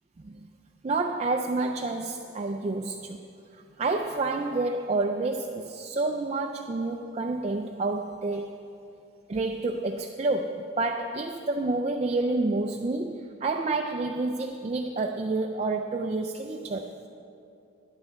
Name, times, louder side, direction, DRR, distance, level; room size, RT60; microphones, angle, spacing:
voice 1, 0.8-3.2 3.8-8.6 9.3-16.9, right 3 dB, 30° right, 4 dB, 0.4 m, -29 dB
11.5 x 11.0 x 4.4 m, 2.7 s
head